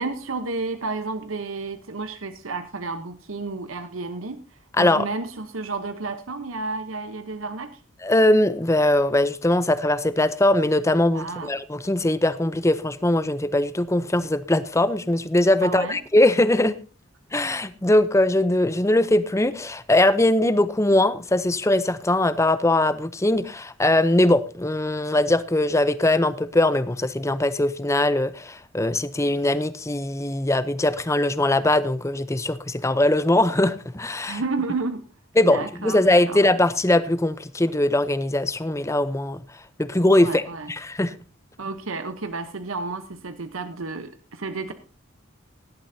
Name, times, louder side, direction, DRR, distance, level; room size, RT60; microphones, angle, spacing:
voice 1, 0.0-7.8 11.1-11.5 15.6-16.0 34.3-35.0 35.4-36.4 40.2-40.7 41.6-44.7, right 3 dB, 80° right, 1.0 m, -31 dB
voice 2, 8.0-16.8 17.3-34.4 35.4-39.4 39.8-40.4 40.7-41.2, left 1 dB, 15° left, 0.6 m, -21 dB
17.5 x 12.0 x 2.7 m
head